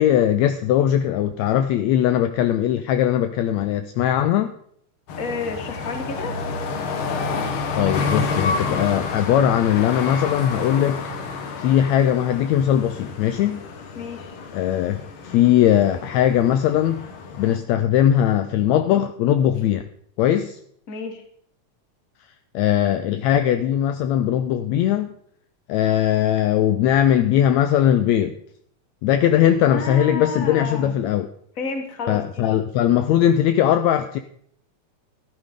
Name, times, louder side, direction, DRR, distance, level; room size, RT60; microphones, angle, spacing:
voice 1, 0.0-4.5 7.8-11.0 11.6-13.6 14.5-17.0 17.4-19.8 20.2-20.6 22.5-25.1 25.7-28.3 29.0-31.3 32.1-34.2, left 11 dB, 75° left, 9 dB, 1.7 m, -19 dB
sound 1, 5.1-17.6, left 4 dB, 55° left, 1.6 m, -29 dB
voice 2, 5.2-6.4 14.0-14.4 20.9-21.2 29.6-31.0 31.6-32.5, left 3 dB, 35° left, 4 dB, 1.7 m, -31 dB
13.5 x 12.0 x 3.7 m, 0.65 s
omnidirectional pair, 3.4 m